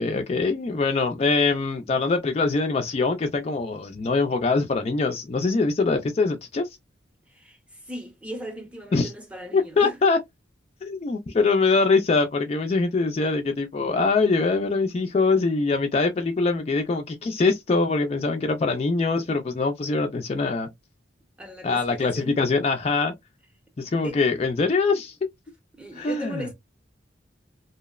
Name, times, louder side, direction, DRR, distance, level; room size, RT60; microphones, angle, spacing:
voice 1, 0.0-6.8 8.9-9.1 9.5-10.2 10.8-20.7 21.6-23.1 23.8-25.2 25.9-26.5, left 3 dB, 35° left, 0.3 m, -23 dB
voice 2, 7.3-10.0 21.4-22.3 24.0-24.2 25.8-26.5, equal, 5° right, 0.6 m, -37 dB
2.7 x 2.0 x 2.3 m
head